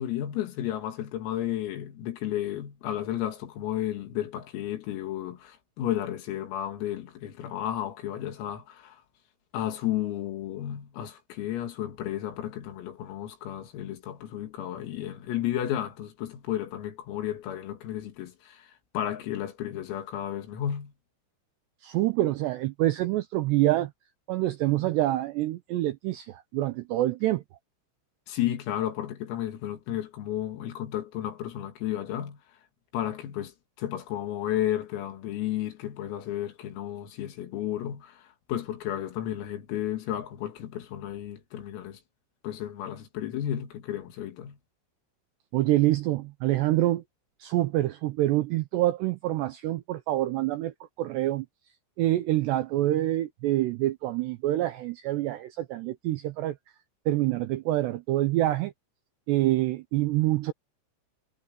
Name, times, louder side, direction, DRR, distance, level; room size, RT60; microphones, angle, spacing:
voice 1, 0.0-9.0 9.5-18.7 19.0-20.9 28.3-32.4 32.9-42.0 42.4-44.6, left 11 dB, 90° left, 5.2 m, -33 dB
voice 2, 21.8-23.9 24.3-27.4 45.5-47.0 47.4-51.5 52.0-56.6 57.1-58.7 59.3-60.5, right 15 dB, 80° right, 2.4 m, -26 dB
omnidirectional pair, 5.9 m